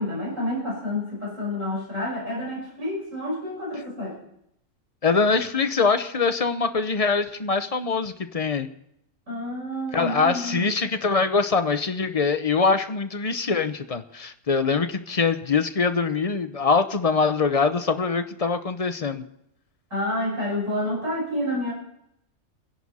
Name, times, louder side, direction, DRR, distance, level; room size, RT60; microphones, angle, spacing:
voice 1, 0.0-4.2 9.3-10.7 19.9-21.7, left 1 dB, 60° right, -4 dB, 6.2 m, -29 dB
voice 2, 5.0-8.7 9.9-19.3, left 4 dB, 35° left, 9 dB, 0.6 m, -23 dB
27.0 x 11.0 x 4.2 m, 0.78 s
omnidirectional pair, 1.5 m